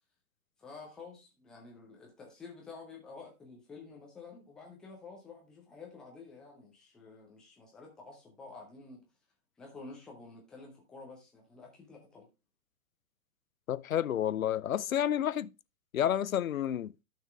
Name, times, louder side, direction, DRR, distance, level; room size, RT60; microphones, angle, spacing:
voice 1, 0.6-9.1 9.6-12.3, left 4 dB, ahead, 0.4 m, -50 dB
voice 2, 13.7-15.5 15.9-16.9, left 10 dB, 70° left, 0.6 m, -30 dB
11.5 x 5.9 x 3.4 m
figure-of-eight pair, 110°, 44 cm